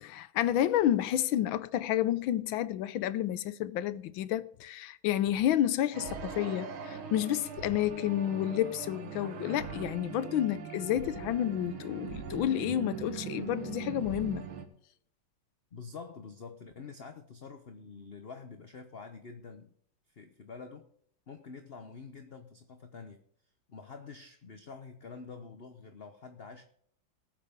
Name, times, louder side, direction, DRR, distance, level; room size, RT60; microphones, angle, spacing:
voice 1, 0.0-14.4, left 12 dB, 80° left, 1.4 m, -30 dB
sound 1, 5.9-14.7, right 6 dB, 80° right, 2.1 m, -41 dB
voice 2, 15.7-19.7 20.1-20.9 21.3-23.2 23.7-26.7, left 5 dB, 45° left, 0.8 m, -47 dB
19.5 x 7.9 x 3.6 m
omnidirectional pair, 2.3 m